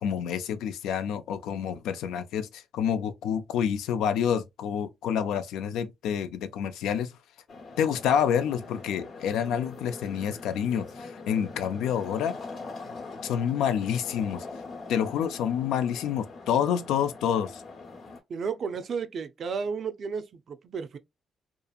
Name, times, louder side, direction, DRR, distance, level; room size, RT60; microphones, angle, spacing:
voice 1, 0.0-7.1 7.8-12.3 13.2-14.4 14.9-17.6, left 8 dB, 85° left, 0.4 m, -28 dB
sound 1, 7.5-18.2, left 3 dB, 60° left, 0.9 m, -43 dB
voice 2, 18.3-21.0, right 5 dB, 55° right, 0.4 m, -33 dB
2.8 x 2.4 x 2.3 m
cardioid pair, 90°, 0 cm